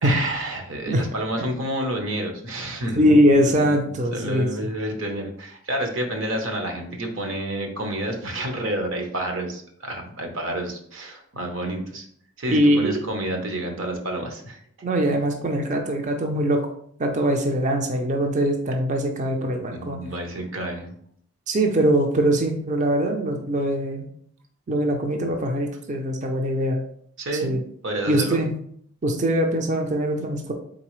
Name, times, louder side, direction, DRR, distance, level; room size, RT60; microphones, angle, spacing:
voice 1, 0.0-3.8 4.1-12.0 12.4-14.6 19.7-20.9 27.2-27.6 27.8-28.4, right 1 dB, 65° right, 3 dB, 0.9 m, -29 dB
voice 2, 3.0-4.5 12.5-13.0 14.8-16.6 17.0-20.0 21.5-24.1 24.7-26.8 27.4-27.6 28.1-28.5 29.0-30.5, equal, 35° right, 3 dB, 0.5 m, -22 dB
3.9 x 3.8 x 3.1 m, 0.64 s
head